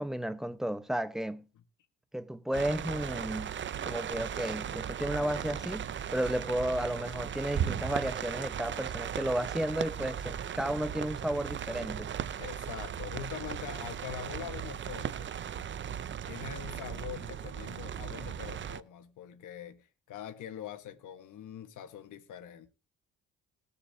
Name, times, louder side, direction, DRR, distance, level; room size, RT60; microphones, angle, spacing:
voice 1, 0.0-1.4 2.1-3.5 3.8-12.1, right 1 dB, ahead, 1.0 m, -33 dB
sound 1, 2.5-18.8, right 9 dB, 40° right, 0.6 m, -37 dB
voice 2, 12.4-15.3 16.3-22.7, left 9 dB, 80° left, 1.3 m, -43 dB
19.5 x 7.0 x 2.7 m
cardioid pair, 90°, 30 cm